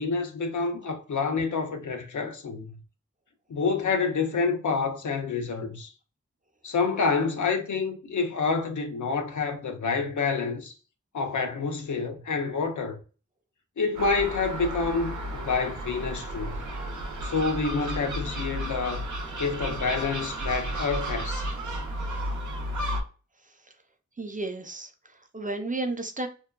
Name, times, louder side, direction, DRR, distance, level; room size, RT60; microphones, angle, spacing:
voice 1, 0.0-2.8 3.5-5.9 6.6-10.8 11.1-13.0 13.8-16.6 17.2-19.1 19.4-21.5, left 4 dB, 85° left, 0.5 m, -28 dB
Gull seagull, 14.0-23.0, right 1 dB, 90° right, 0.5 m, -33 dB
voice 2, 24.2-26.3, right 2 dB, 30° right, 0.4 m, -33 dB
2.7 x 2.1 x 2.2 m
wide cardioid pair, 55°, 29 cm